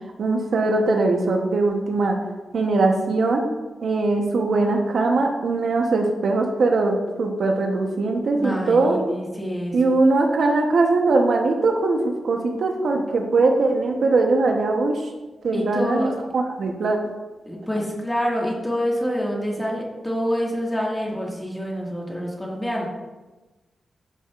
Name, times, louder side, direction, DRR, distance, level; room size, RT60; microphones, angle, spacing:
voice 1, 0.2-2.2 2.5-3.5 3.8-9.1 9.7-14.9 15.4-17.0, right 3 dB, 70° right, 2 dB, 0.9 m, -21 dB
voice 2, 8.4-10.0 15.5-16.1 17.4-22.9, equal, 10° left, -3 dB, 1.8 m, -27 dB
12.5 x 5.6 x 2.5 m, 1.2 s
wide cardioid pair, 105°, 0 cm